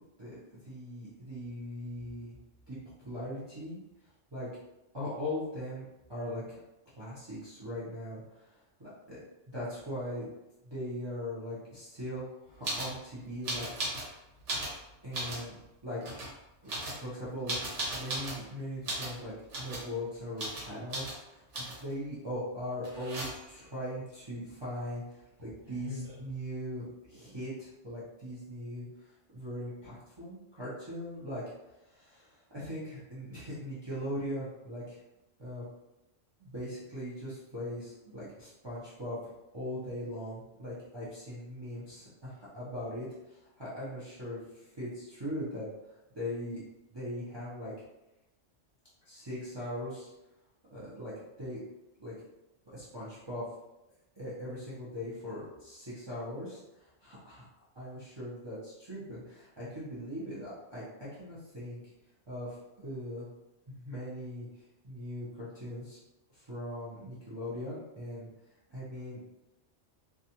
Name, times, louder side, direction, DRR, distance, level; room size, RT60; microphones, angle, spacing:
voice 1, 0.2-2.4 2.7-3.8 4.3-4.5 4.9-6.4 6.9-8.5 8.8-9.2 9.5-10.3 10.6-13.7 15.0-16.0 16.6-28.9 29.3-31.5 31.8-35.0 35.4-35.6 36.4-45.7 46.1-46.6 46.9-47.7 49.0-50.1 50.7-51.1 51.4-51.6 52.0-52.1 52.7-53.4 54.2-57.4 57.7-61.8 62.3-62.6 62.8-63.3 63.7-64.5 64.8-66.0 66.3-68.3 68.7-69.2, equal, 30° right, -9 dB, 0.6 m, -40 dB
sound 1, 12.6-12.9 13.4-14.1 14.4-15.5 16.0-16.3 16.7-18.4 18.8-19.2 19.5-19.9 20.4-20.7 20.9-21.2 21.5-21.9 22.8-23.6 25.4-25.5 25.7-26.3, right 1 dB, 75° right, 1.1 m, -36 dB
2.4 x 2.3 x 2.8 m, 0.96 s
omnidirectional pair, 1.2 m